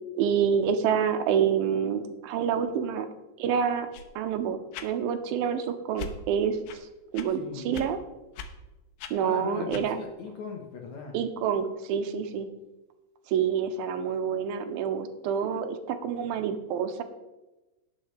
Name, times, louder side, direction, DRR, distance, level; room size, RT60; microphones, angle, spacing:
voice 1, 0.1-3.1 3.4-3.9 4.2-6.6 7.1-8.0 9.1-10.0 11.1-12.5 13.3-17.0, right 7 dB, 90° right, 8 dB, 2.5 m, -27 dB
sound 1, 3.9-4.1 4.7-4.9 6.0-6.2 6.7-6.8 7.1-7.3 7.7-7.9 8.3-8.5 9.0-9.1 9.7-9.9, left 5 dB, 90° left, 2.7 m, -39 dB
voice 2, 7.3-8.0 9.0-11.2, left 4 dB, 65° left, 2 dB, 2.1 m, -40 dB
18.0 x 6.6 x 3.2 m, 1.0 s
omnidirectional pair, 4.2 m